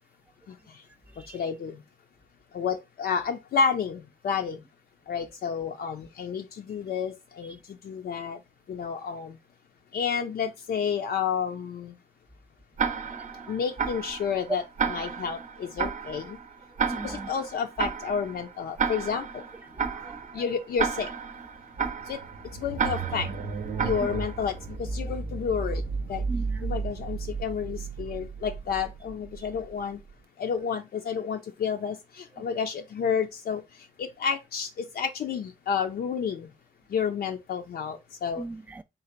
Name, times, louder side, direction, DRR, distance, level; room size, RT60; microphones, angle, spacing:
voice 1, 1.3-1.8 2.5-4.6 5.1-7.6 7.8-8.4 8.7-9.3 9.9-11.9 13.5-16.4 17.0-19.4 20.3-21.1 22.1-22.2 22.6-23.3 23.8-24.5 24.8-25.8 26.1-26.2 26.6-30.0 30.4-33.6 34.0-36.5 36.9-38.4, left 6 dB, 75° left, 0.5 m, -30 dB
Tick-tock, 12.8-24.6, right 6 dB, 55° right, 0.6 m, -33 dB
voice 2, 13.1-13.4 16.9-17.3 19.8-20.5 26.3-26.8 38.4-38.8, right 2 dB, 10° right, 0.3 m, -39 dB
sound 1, 21.8-30.1, right 4 dB, 85° right, 0.8 m, -34 dB
3.8 x 2.4 x 4.4 m
wide cardioid pair, 95°, 16 cm